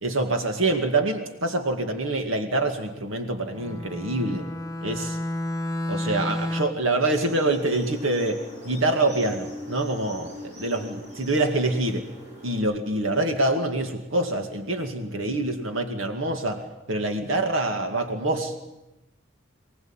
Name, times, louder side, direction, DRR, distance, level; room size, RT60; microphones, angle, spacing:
voice 1, 0.0-4.5 4.8-5.2 5.9-12.0 12.4-16.6 16.9-18.6, right 2 dB, 85° right, 5 dB, 2.2 m, -26 dB
Bowed string instrument, 3.5-6.9, left 1 dB, 15° left, 1.1 m, -31 dB
sound 1, 7.0-12.6, equal, 35° right, 7.3 m, -41 dB
24.0 x 18.5 x 8.9 m, 0.97 s
head